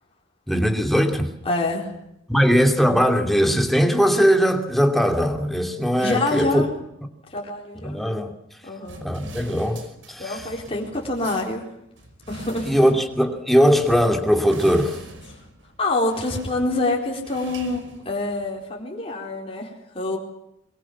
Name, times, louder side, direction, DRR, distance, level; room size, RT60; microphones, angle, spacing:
voice 1, 0.5-1.3 2.3-6.6 7.8-8.3 9.0-9.8 10.1-10.5 12.6-15.0, equal, ahead, 4 dB, 2.8 m, -20 dB
voice 2, 1.4-1.9 6.0-6.7 7.3-8.0 8.6-9.0 10.2-11.6 12.3-12.9 15.8-20.2, left 2 dB, 30° left, -1 dB, 4.3 m, -26 dB
sound 1, 8.8-18.6, right 2 dB, 90° right, 5.0 m, -43 dB
23.5 x 23.5 x 7.4 m, 0.79 s
head